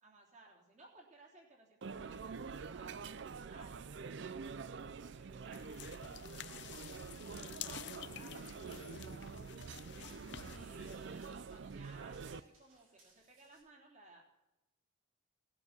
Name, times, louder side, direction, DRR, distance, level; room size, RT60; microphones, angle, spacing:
voice 1, 0.0-5.6 6.3-9.3 10.5-14.2, right 2 dB, 35° right, -1 dB, 3.1 m, -62 dB
sound 1, 1.8-12.4, right 5 dB, 60° right, 0.5 m, -46 dB
sound 2, 5.5-11.3, left 9 dB, 55° left, 0.6 m, -50 dB
Run, 6.3-13.6, right 2 dB, 85° right, 5.6 m, -69 dB
18.0 x 8.6 x 6.7 m, 0.97 s
head